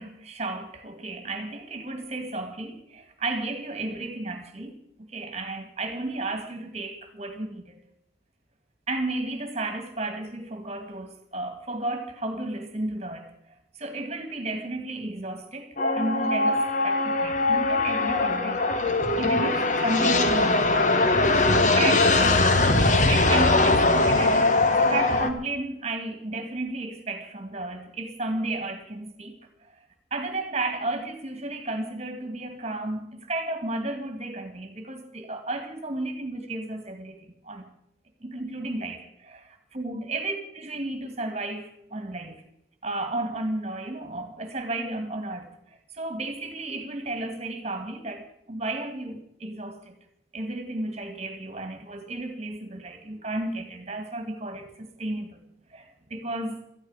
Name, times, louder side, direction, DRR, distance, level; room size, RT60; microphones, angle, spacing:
voice 1, 0.0-7.8 8.9-13.3 13.7-18.6 19.2-22.1 22.6-29.4 30.1-37.2 37.4-37.7 38.2-42.4 42.8-49.9 50.3-55.4 55.7-56.6, right 2 dB, 35° right, 2.2 m, -33 dB
sound 1, 15.8-25.3, left 2 dB, 40° left, 1.2 m, -21 dB
18.0 x 14.0 x 5.0 m
head